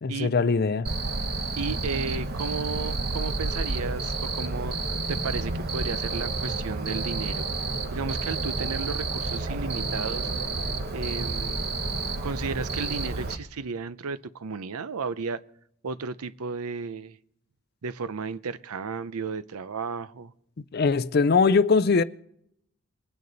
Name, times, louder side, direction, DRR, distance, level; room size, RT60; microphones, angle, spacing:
voice 1, 0.0-0.9 20.7-22.0, left 4 dB, 45° left, 0.4 m, -21 dB
Cricket, 0.9-13.4, right 3 dB, 45° right, 1.0 m, -30 dB
voice 2, 1.6-4.8 5.1-7.5 7.9-10.3 10.9-11.6 12.2-15.4 15.8-17.2 17.8-20.3, right 5 dB, 85° right, 0.6 m, -33 dB
23.0 x 9.4 x 4.0 m
head